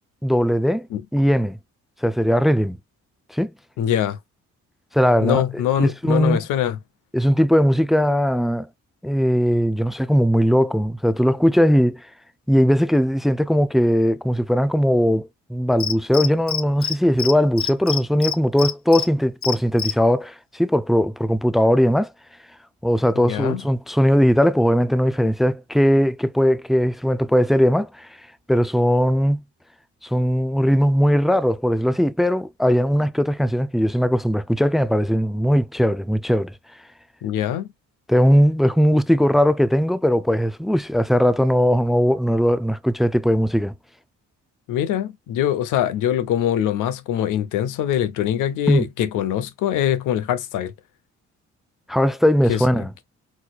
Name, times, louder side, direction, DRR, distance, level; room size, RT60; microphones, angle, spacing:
voice 1, 0.2-0.9 1.1-1.6 2.0-2.8 3.3-3.5 4.9-6.4 7.1-8.7 9.0-12.1 12.5-22.1 22.8-28.1 28.5-29.4 30.0-36.5 38.1-43.7 48.7-48.9 51.9-52.9, equal, ahead, 0.3 m, -19 dB
voice 2, 3.8-4.2 5.2-6.8 23.1-23.6 37.2-37.7 44.7-50.7 52.5-52.9, left 10 dB, 90° left, 0.9 m, -23 dB
Cricket, 15.8-16.9 17.2-17.3 17.6-19.1 19.4-19.9, left 8 dB, 45° left, 0.8 m, -25 dB
4.5 x 4.1 x 2.4 m
cardioid pair, 90°, 30 cm